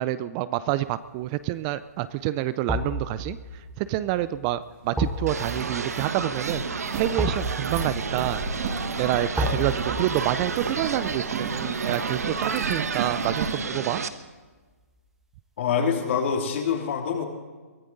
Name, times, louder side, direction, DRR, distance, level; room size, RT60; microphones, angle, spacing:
voice 1, 0.0-6.6 7.0-8.4 9.0-14.0, right 14 dB, 25° right, 15 dB, 0.4 m, -28 dB
sound 1, 0.9-1.3 2.7-13.7 14.0-14.1, left 1 dB, 5° right, 1.7 m, -35 dB
sound 2, 4.8-4.9 5.2-13.6, right 4 dB, 50° right, 4.4 m, -34 dB
sound 3, 5.3-14.1, right 5 dB, 75° right, 1.1 m, -31 dB
voice 2, 15.6-17.3, left 6 dB, 50° left, 2 dB, 3.1 m, -25 dB
23.0 x 14.5 x 4.0 m, 1.4 s
hypercardioid pair, 135°, 8 cm